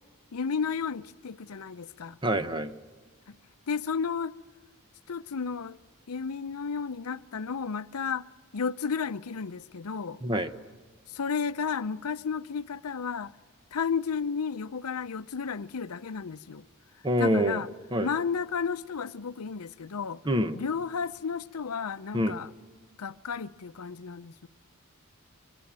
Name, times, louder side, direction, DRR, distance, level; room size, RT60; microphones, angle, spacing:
voice 1, 0.3-2.2 3.3-3.4 3.7-4.3 5.1-5.8 6.1-8.2 8.5-10.2 11.1-13.3 13.7-16.6 17.2-17.7 18.0-20.2 20.5-22.5 23.0-24.5, left 6 dB, 80° left, 0.6 m, -32 dB
voice 2, 2.2-2.7 10.2-10.5 17.0-17.6 17.9-18.1 20.2-20.6 22.1-22.4, equal, 20° right, 0.9 m, -26 dB
23.5 x 23.0 x 7.5 m
head